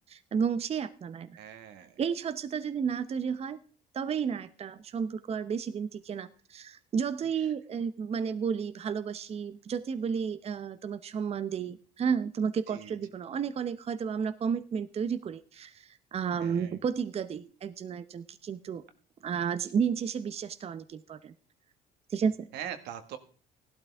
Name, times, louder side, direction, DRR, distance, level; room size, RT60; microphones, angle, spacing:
voice 1, 0.1-1.4 2.0-3.6 3.9-18.8 19.2-21.3 22.1-22.5, right 7 dB, 35° right, 12 dB, 0.7 m, -32 dB
voice 2, 1.4-2.0 12.7-12.9 16.4-16.8 22.5-23.2, right 9 dB, 85° right, 8 dB, 1.6 m, -42 dB
15.5 x 12.0 x 3.4 m, 0.42 s
cardioid pair, 110°, 17 cm